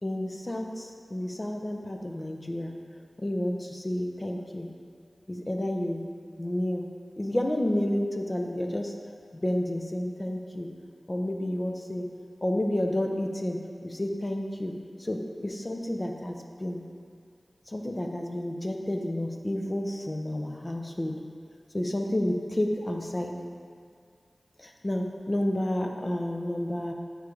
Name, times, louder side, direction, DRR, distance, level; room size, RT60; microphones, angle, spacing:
voice 1, 0.0-2.7 3.2-4.7 5.3-6.0 6.4-6.9 7.2-8.9 9.4-10.7 11.1-12.1 12.4-16.8 17.7-21.2 21.7-23.3 24.6-26.9, left 1 dB, 35° left, 2 dB, 0.7 m, -30 dB
9.1 x 4.7 x 3.3 m, 2.2 s
wide cardioid pair, 60°, 0 cm